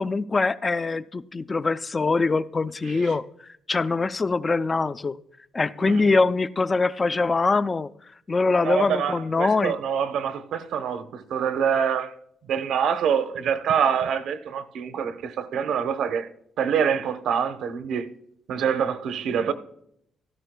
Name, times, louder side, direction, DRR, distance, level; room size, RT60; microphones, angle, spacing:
voice 1, 0.0-3.2 3.7-5.2 5.5-7.9 8.3-9.7, left 3 dB, 30° left, 0.4 m, -23 dB
voice 2, 8.6-12.1 12.5-16.3 16.6-18.1 18.5-19.5, right 7 dB, 75° right, 0.8 m, -25 dB
16.0 x 12.5 x 2.2 m
cardioid pair, 90°, 0 cm